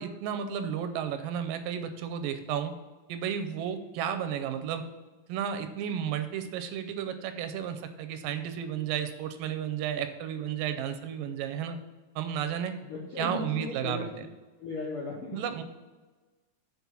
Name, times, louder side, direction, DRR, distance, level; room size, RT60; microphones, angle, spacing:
voice 1, 0.0-2.7 3.1-4.8 5.3-11.8 12.2-12.7 13.2-14.1 15.3-15.6, right 9 dB, 90° right, 9 dB, 2.4 m, -33 dB
voice 2, 12.8-14.0 14.6-15.4, left 3 dB, 75° left, -3 dB, 1.3 m, -36 dB
7.0 x 4.0 x 6.0 m, 1.3 s
omnidirectional pair, 3.9 m